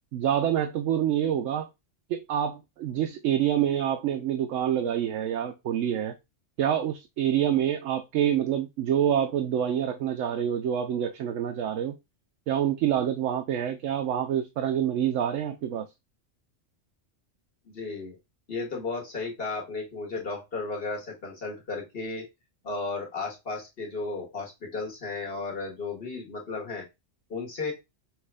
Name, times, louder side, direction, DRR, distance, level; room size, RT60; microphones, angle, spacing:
voice 1, 0.1-1.7 2.1-6.1 6.6-12.0 12.5-15.9, right 10 dB, 90° right, 0.9 m, -27 dB
voice 2, 17.7-18.1 18.5-22.3 22.6-26.8 27.3-27.7, left 3 dB, 50° left, 1.7 m, -34 dB
6.0 x 2.4 x 3.3 m
omnidirectional pair, 1.3 m